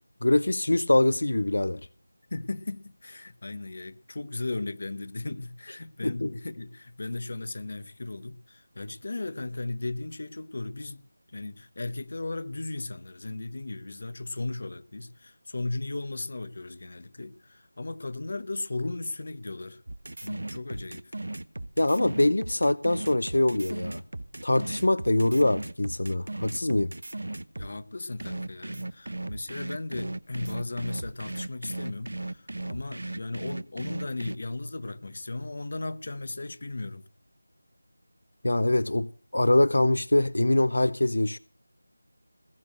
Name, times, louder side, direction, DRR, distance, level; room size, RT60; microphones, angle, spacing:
voice 1, 0.2-1.8 6.0-6.3 21.8-24.0 24.4-26.9 38.4-41.4, left 1 dB, 65° left, 0.6 m, -24 dB
voice 2, 2.3-11.0 11.3-19.8 20.2-21.1 27.5-37.0, left 2 dB, 35° left, 1.1 m, -36 dB
sound 1, 19.9-27.7 28.2-34.4, right 2 dB, 65° right, 1.0 m, -36 dB
20.0 x 7.0 x 7.8 m
figure-of-eight pair, 180°, 0 cm